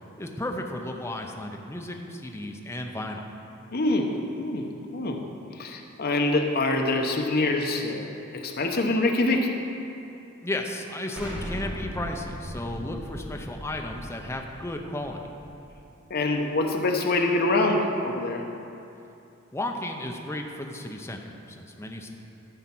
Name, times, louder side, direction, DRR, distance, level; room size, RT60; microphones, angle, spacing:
voice 1, 0.2-3.3 10.4-15.2 19.5-21.2 21.5-22.1, left 1 dB, 15° left, 2 dB, 0.7 m, -34 dB
voice 2, 3.7-5.2 5.6-9.5 16.1-18.4, left 2 dB, 50° left, 2 dB, 0.9 m, -25 dB
Explosion, 11.2-16.0, equal, 5° right, 1.6 m, -38 dB
13.0 x 4.4 x 6.0 m, 2.8 s
head